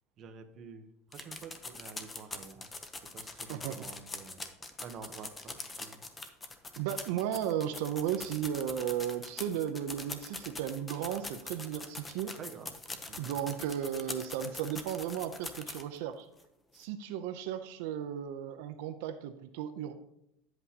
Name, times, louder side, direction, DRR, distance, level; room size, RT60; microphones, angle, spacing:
voice 1, 0.2-4.5 4.8-6.0 12.3-12.7 13.1-13.3, right 6 dB, 35° right, 5 dB, 0.9 m, -49 dB
sound 1, 1.1-16.0 16.4-16.5 16.8-16.9, left 3 dB, 15° left, 0.7 m, -43 dB
voice 2, 6.8-12.3 13.2-16.3 16.7-19.9, right 10 dB, 70° right, 7 dB, 0.6 m, -35 dB
10.5 x 7.9 x 2.8 m, 0.78 s
supercardioid pair, 150°, 0 cm